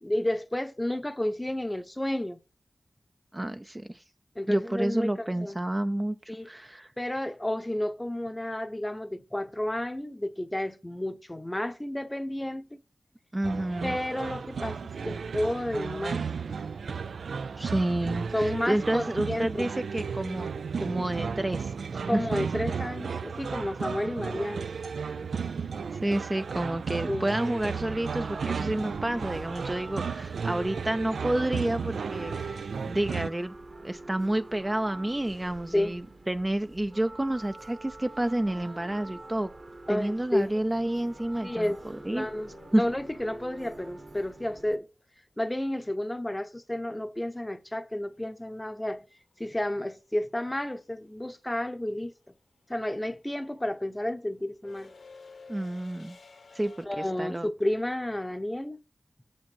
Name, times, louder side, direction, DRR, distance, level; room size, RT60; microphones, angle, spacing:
voice 1, 0.0-2.4 4.4-5.6 6.3-6.5 7.0-12.8 13.8-16.2 18.3-19.7 22.1-24.7 27.1-27.3 35.7-36.0 39.9-40.6 41.4-44.9 45.4-49.0 49.4-52.1 52.7-54.9 56.8-58.8, left 1 dB, 15° left, 0.7 m, -31 dB
voice 2, 3.3-4.0 4.5-6.2 6.4-6.9 13.3-14.0 17.6-20.5 20.8-22.2 26.0-32.6 32.8-33.5 33.8-39.5 39.9-41.7 42.0-42.3 42.7-42.8 55.5-56.2 56.5-57.5, right 1 dB, 20° right, 0.4 m, -29 dB
sound 1, 13.4-33.3, right 6 dB, 85° right, 0.3 m, -34 dB
sound 2, 27.5-44.8, right 2 dB, 45° right, 1.1 m, -46 dB
sound 3, 40.6-44.7 47.1-47.2 48.5-48.8 49.1-56.9, left 4 dB, 85° left, 1.8 m, -54 dB
7.1 x 5.2 x 5.4 m
cardioid pair, 60°, 0 cm